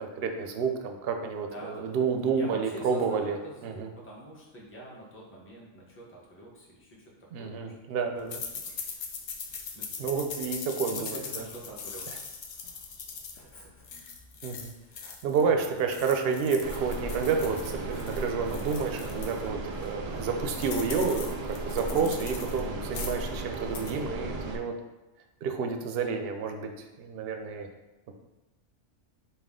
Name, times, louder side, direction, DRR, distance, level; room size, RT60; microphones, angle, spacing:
voice 1, 0.0-3.9 7.3-8.4 10.0-11.4 14.4-14.7 15.0-24.7 25.4-27.7, right 5 dB, 65° right, 4 dB, 0.7 m, -30 dB
voice 2, 1.5-2.0 2.3-7.7 8.2-8.8 9.7-10.0 10.9-12.2 13.3-13.8 14.8-15.2 15.5-15.7 16.4-16.6, right 1 dB, 10° left, -5 dB, 0.8 m, -46 dB
sound 1, 8.3-15.5 15.8-19.4 19.8-19.9 20.2-22.6 22.9-23.3 23.6-23.9, left 5 dB, 60° left, 0.7 m, -41 dB
sound 2, 16.6-24.6, right 2 dB, 90° right, 0.3 m, -36 dB
5.6 x 2.3 x 3.6 m, 1.1 s
omnidirectional pair, 1.3 m